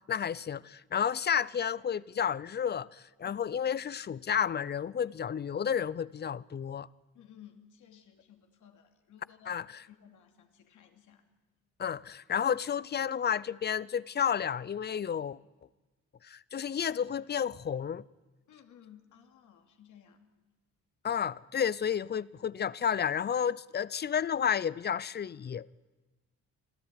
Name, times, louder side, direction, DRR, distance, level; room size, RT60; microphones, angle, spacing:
voice 1, 0.1-6.9 9.5-9.8 11.8-15.4 16.2-18.0 21.0-25.7, left 8 dB, 35° left, 0.6 m, -31 dB
voice 2, 7.1-9.6 9.8-11.2 18.5-20.3, left 9 dB, 75° left, 2.8 m, -56 dB
26.0 x 14.0 x 9.9 m
cardioid pair, 90°, 30 cm